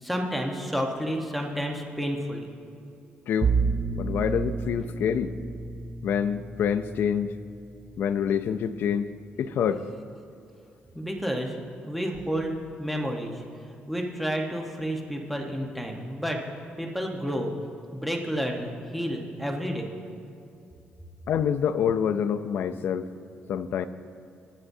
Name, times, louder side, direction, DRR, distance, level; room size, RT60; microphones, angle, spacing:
voice 1, 0.0-2.5 10.9-11.6 11.8-12.5 12.8-13.3 13.9-16.4 16.8-17.5 17.9-19.9, equal, ahead, 1 dB, 1.1 m, -30 dB
Bowed string instrument, 3.4-8.5, right 5 dB, 35° right, 0.3 m, -31 dB
voice 2, 4.0-5.3 6.0-7.3 8.0-9.1 9.4-9.8 21.3-23.1 23.5-23.9, left 8 dB, 70° left, 11 dB, 0.5 m, -26 dB
21.0 x 7.6 x 2.7 m, 2.6 s
cardioid pair, 120°, 4 cm